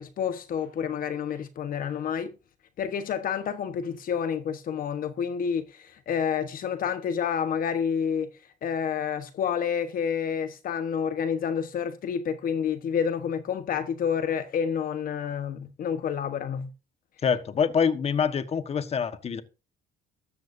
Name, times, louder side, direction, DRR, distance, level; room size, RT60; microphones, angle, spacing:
voice 1, 0.0-2.3 2.8-8.3 8.6-16.7, left 7 dB, 55° left, 1.2 m, -29 dB
voice 2, 17.2-19.4, left 6 dB, 40° left, 1.4 m, -25 dB
15.0 x 13.5 x 2.7 m
cardioid pair, 110°, 17 cm